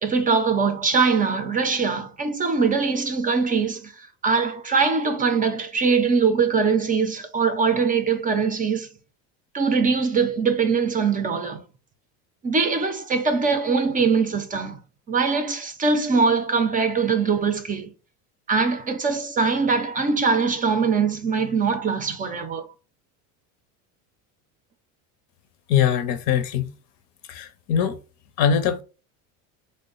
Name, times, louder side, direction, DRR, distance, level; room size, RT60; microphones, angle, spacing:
voice 1, 0.0-8.9 9.5-11.6 12.4-14.8 15.1-17.9 18.5-22.7, right 5 dB, 20° right, 0.5 m, -22 dB
voice 2, 25.7-26.7 27.3-28.0 28.4-28.8, left 8 dB, 65° left, 0.7 m, -22 dB
3.4 x 2.1 x 3.8 m
supercardioid pair, 120°, 39 cm